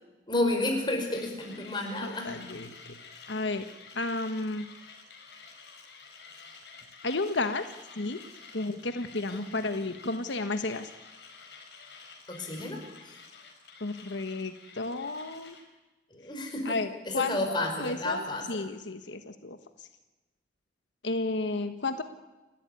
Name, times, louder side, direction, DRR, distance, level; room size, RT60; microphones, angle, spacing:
voice 1, 0.3-2.3 9.3-9.5 12.3-13.2 16.1-16.8 17.0-18.5, left 2 dB, 25° left, 2 dB, 5.2 m, -31 dB
Mechanisms, 1.1-15.7, left 5 dB, 65° left, 4.9 m, -50 dB
voice 2, 2.0-2.7 3.3-3.6 3.9-4.6 7.0-7.6 8.0-8.2 8.5-10.9 13.8-15.5 16.6-19.9 21.0-22.0, left 3 dB, 85° left, 8 dB, 1.4 m, -32 dB
30.0 x 13.5 x 9.7 m, 1.1 s
head